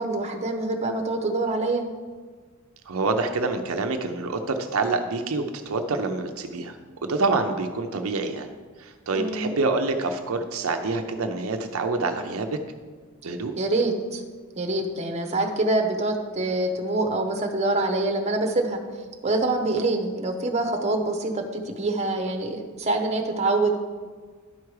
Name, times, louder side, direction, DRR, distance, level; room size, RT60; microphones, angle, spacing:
voice 1, 0.0-1.8 9.1-9.5 13.6-14.2 14.5-18.8 19.2-23.8, right 2 dB, 30° right, 3 dB, 0.9 m, -25 dB
voice 2, 2.9-6.8 7.0-8.5 8.8-12.6 13.2-13.5, right 3 dB, 75° right, 5 dB, 0.6 m, -26 dB
11.5 x 4.7 x 4.8 m, 1.5 s
head